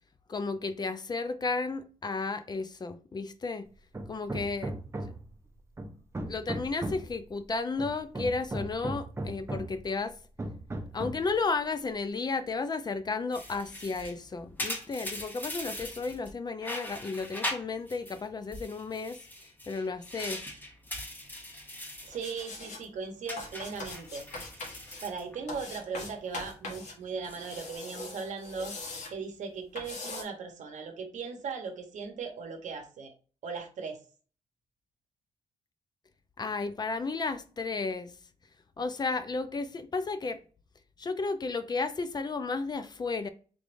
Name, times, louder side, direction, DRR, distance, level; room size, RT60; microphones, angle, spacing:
voice 1, 0.3-3.7 4.1-4.7 5.0-5.1 6.2-10.1 10.9-19.2 19.7-20.5 36.4-38.1 38.8-40.4 41.0-43.3, left 4 dB, 35° left, 0.4 m, -33 dB
Hammer, 3.9-5.3 5.8-7.2 7.8-9.8 10.4-11.3, right 1 dB, 20° right, 0.6 m, -37 dB
sound 1, 13.3-16.3 16.6-18.2 18.5-22.2 22.5-22.8 23.3-25.8 26.2-26.5 27.1-27.7, left 1 dB, 15° left, 1.0 m, -40 dB
voice 2, 22.0-24.3 25.0-28.7 29.1-33.1 33.4-34.0, right 5 dB, 80° right, 0.8 m, -38 dB
sound 2, 22.1-22.8 23.4-25.0 25.5-26.9 27.2-29.1 29.8-30.2, left 2 dB, 70° left, 1.1 m, -41 dB
3.6 x 3.4 x 2.5 m
cardioid pair, 75°, 13 cm